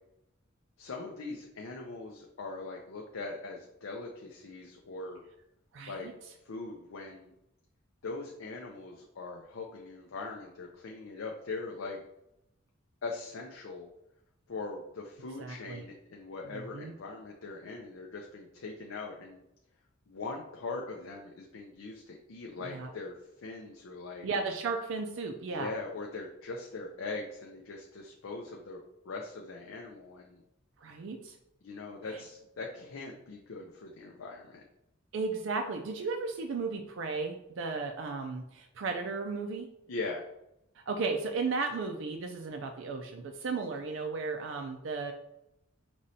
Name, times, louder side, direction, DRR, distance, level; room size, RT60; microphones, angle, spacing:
voice 1, 0.8-5.2 5.9-6.1 6.4-7.3 8.0-12.0 13.0-13.9 14.5-19.4 20.1-23.1 23.4-24.3 25.5-30.4 31.6-34.6 39.9-40.2, left 3 dB, 85° left, 0 dB, 0.5 m, -41 dB
voice 2, 5.7-6.1 15.4-15.8 16.5-16.9 22.6-22.9 24.2-25.7 30.8-31.4 35.1-39.7 40.9-45.1, right 4 dB, 70° right, 4 dB, 0.4 m, -35 dB
5.1 x 3.1 x 2.7 m, 0.83 s
head